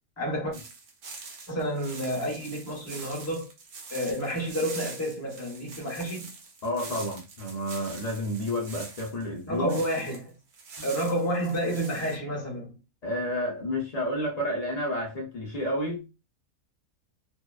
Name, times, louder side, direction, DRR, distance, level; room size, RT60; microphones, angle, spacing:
voice 1, 0.2-0.5 1.5-3.5 3.9-6.3 9.5-10.3 10.8-12.7, equal, 15° left, 0.6 m, -30 dB
sound 1, 0.5-10.2 10.5-12.2, right 4 dB, 80° right, 1.1 m, -44 dB
voice 2, 6.6-9.8 10.8-10.9 13.0-16.1, left 1 dB, 65° left, 0.4 m, -30 dB
2.7 x 2.1 x 2.3 m
omnidirectional pair, 1.5 m